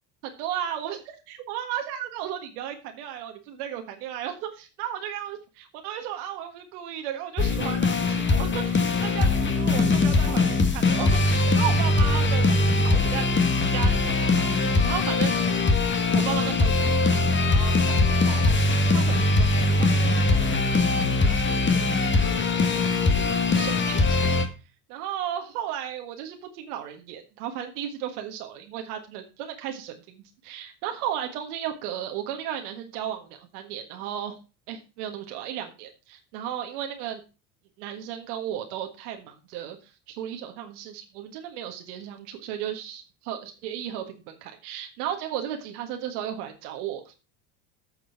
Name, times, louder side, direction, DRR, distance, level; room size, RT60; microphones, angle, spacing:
voice 1, 0.2-5.4 5.8-13.2 13.7-15.4 16.2-18.6 18.9-20.9 21.2-22.6 23.0-24.4 24.9-34.4 34.7-37.2 37.8-47.1, right 10 dB, 70° right, 4 dB, 1.7 m, -35 dB
sound 1, 7.4-24.5, left 3 dB, 25° left, 1.7 m, -22 dB
8.5 x 6.0 x 5.7 m, 0.31 s
hypercardioid pair, 75°, 46 cm